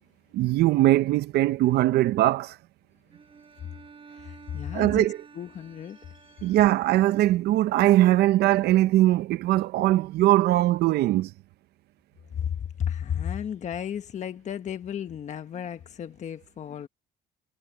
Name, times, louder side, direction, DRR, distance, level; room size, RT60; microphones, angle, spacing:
voice 1, 0.3-2.6 4.7-5.2 6.4-11.3, right 15 dB, 75° right, 0.6 m, -21 dB
Bowed string instrument, 3.1-7.7, right 5 dB, 30° right, 5.5 m, -51 dB
voice 2, 4.1-5.1 5.3-6.5 12.3-16.9, left 9 dB, 45° left, 1.2 m, -34 dB
cardioid pair, 110°, 17 cm